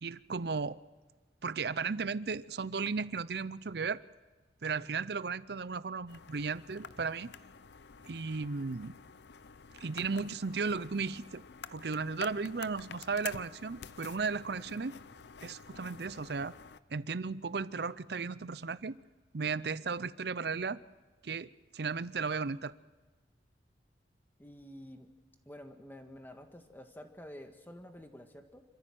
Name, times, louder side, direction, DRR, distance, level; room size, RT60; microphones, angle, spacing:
voice 1, 0.0-0.8 1.4-4.0 4.6-7.3 8.1-8.9 9.8-11.4 11.7-15.0 15.4-16.5 16.9-19.0 19.3-20.8 21.2-22.7, right 4 dB, 60° right, 0.6 m, -35 dB
sound 1, 6.1-16.8, left 6 dB, 65° left, 0.6 m, -50 dB
voice 2, 24.4-25.1 25.4-28.6, equal, 10° left, 1.6 m, -49 dB
27.0 x 14.5 x 7.7 m
head